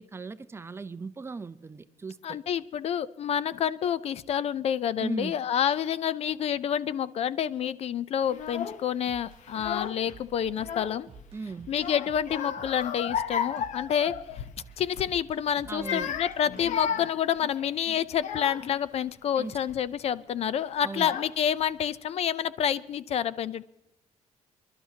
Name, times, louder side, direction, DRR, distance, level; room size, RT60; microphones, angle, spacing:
voice 1, 0.0-2.4 5.0-5.4 11.3-11.7 15.7-16.1 19.4-19.6 20.8-21.1, right 4 dB, 20° right, 13 dB, 0.5 m, -37 dB
voice 2, 2.2-11.1 11.7-14.1 14.8-23.6, left 9 dB, 55° left, 17 dB, 0.5 m, -28 dB
Child speech kid speaking / Crying sobbing, 8.3-8.8 9.5-10.1 10.4-11.3 11.7-14.6 14.9-15.2 15.7-18.8 19.4-19.8 20.6-20.7 20.9-21.6, left 8 dB, 75° left, 0.8 m, -34 dB
sound 1, 9.1-16.9, right 8 dB, 50° right, 0.8 m, -51 dB
28.5 x 12.0 x 2.8 m, 0.90 s
cardioid pair, 140°, 13 cm